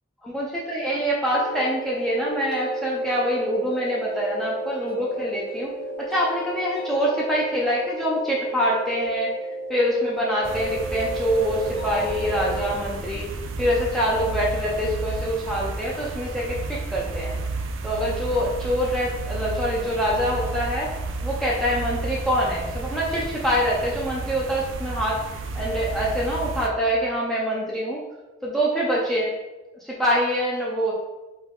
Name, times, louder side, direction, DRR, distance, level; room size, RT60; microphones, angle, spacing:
voice 1, 0.2-5.7 6.0-9.3 9.7-13.3 13.6-17.4 17.8-20.9 21.2-25.2 25.5-28.0 28.4-29.3 29.8-30.9, equal, ahead, -5 dB, 0.5 m, -25 dB
sound 1, 1.3-12.8, right 1 dB, 45° left, 1.0 m, -32 dB
sound 2, 10.4-26.7, right 3 dB, 65° right, 0.4 m, -32 dB
4.0 x 3.5 x 3.7 m, 1.1 s
head